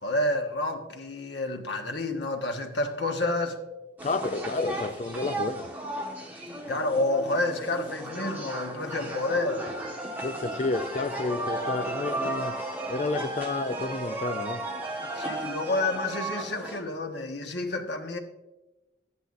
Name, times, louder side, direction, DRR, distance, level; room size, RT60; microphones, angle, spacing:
voice 1, 0.0-3.6 6.7-9.7 15.1-18.2, left 2 dB, 85° left, 1.3 m, -29 dB
voice 2, 4.0-5.7 10.2-12.5 12.9-14.6, left 3 dB, 40° left, 0.4 m, -30 dB
sound 1, 4.0-16.8, right 2 dB, 10° right, 1.4 m, -34 dB
14.0 x 10.0 x 2.6 m
head